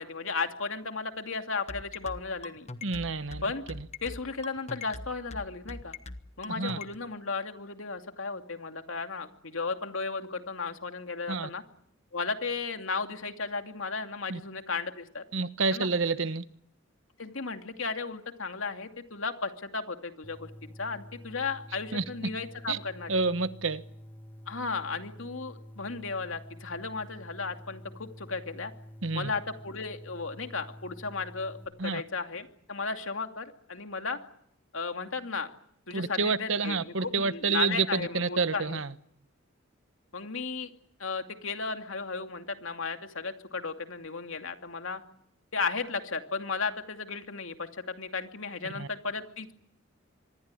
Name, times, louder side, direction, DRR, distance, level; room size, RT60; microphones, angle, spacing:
voice 1, 0.0-2.7 3.4-3.6 4.0-5.9 6.4-11.6 12.1-15.2 15.7-15.9 17.2-23.2 24.5-28.7 29.1-31.6 31.8-34.2 34.7-35.5 35.9-38.8 40.1-40.7 41.0-45.0 45.5-49.5, left 4 dB, 75° left, 2.6 m, -35 dB
sound 1, 1.7-6.9, left 3 dB, 35° left, 1.2 m, -40 dB
voice 2, 2.8-3.4 3.7-3.8 6.6-6.8 11.3-11.5 14.3-14.4 15.3-16.4 21.9-22.0 22.7-22.8 23.1-23.8 29.0-29.3 31.8-32.0 35.9-38.9 48.7-48.9, right 4 dB, 70° right, 1.2 m, -29 dB
sound 2, 20.2-31.7, equal, 10° left, 2.4 m, -48 dB
25.0 x 22.0 x 9.8 m
head